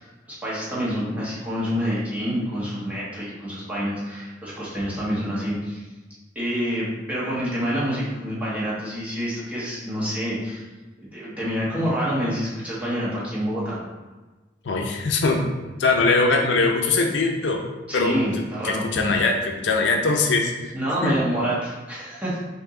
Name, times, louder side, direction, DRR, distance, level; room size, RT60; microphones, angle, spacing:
voice 1, 0.4-5.8 6.3-10.6 11.1-13.8 17.9-18.8 20.7-22.4, equal, 10° right, -8 dB, 1.4 m, -27 dB
voice 2, 14.7-15.5 15.8-17.6 17.9-18.2 18.6-20.5 21.0-21.2, left 3 dB, 80° left, 2 dB, 0.6 m, -21 dB
4.7 x 2.7 x 3.7 m, 1.2 s
head